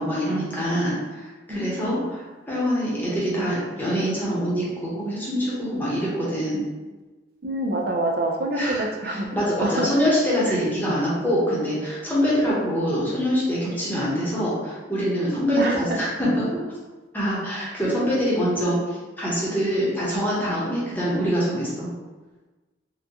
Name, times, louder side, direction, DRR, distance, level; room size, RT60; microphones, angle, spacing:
voice 1, 0.0-6.6 8.5-16.6 17.1-21.9, equal, 10° left, -7 dB, 0.9 m, -25 dB
voice 2, 1.5-2.0 7.4-9.9 10.5-10.6 15.6-16.0 17.8-17.9, right 2 dB, 55° right, 1 dB, 0.5 m, -27 dB
3.8 x 2.2 x 2.8 m, 1.2 s
head